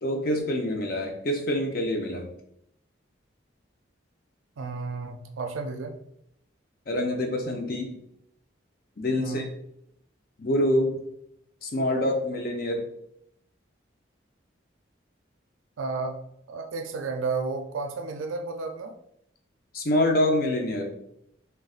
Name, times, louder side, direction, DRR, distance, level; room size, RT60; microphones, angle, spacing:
voice 1, 0.0-2.3 6.9-8.0 9.0-9.5 10.4-11.0 11.6-12.8 19.7-21.0, left 1 dB, 50° left, 3 dB, 0.5 m, -26 dB
voice 2, 4.6-5.9 9.2-9.5 15.8-16.2 16.5-19.0, right 4 dB, 85° right, 6 dB, 0.4 m, -32 dB
3.9 x 2.2 x 2.4 m, 0.76 s
head